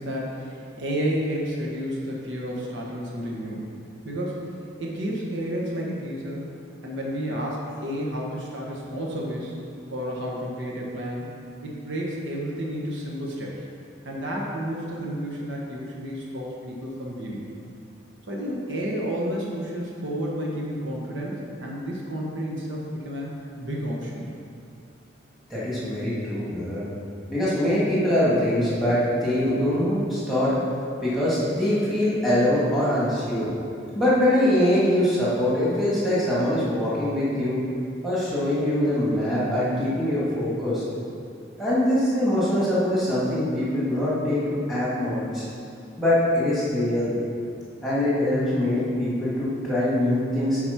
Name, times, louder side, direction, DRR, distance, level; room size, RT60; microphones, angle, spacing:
voice 1, 0.0-3.7 4.0-4.5 4.8-6.5 6.8-9.5 9.9-13.5 14.0-17.4 18.3-23.3 23.6-24.4, equal, 75° right, -3 dB, 1.3 m, -31 dB
voice 2, 25.5-26.9 27.3-30.6 31.0-33.5 33.9-37.6 38.0-40.8 41.6-45.4 46.0-47.1 47.8-50.6, left 1 dB, ahead, -9 dB, 2.0 m, -23 dB
9.2 x 4.3 x 5.8 m, 2.5 s
head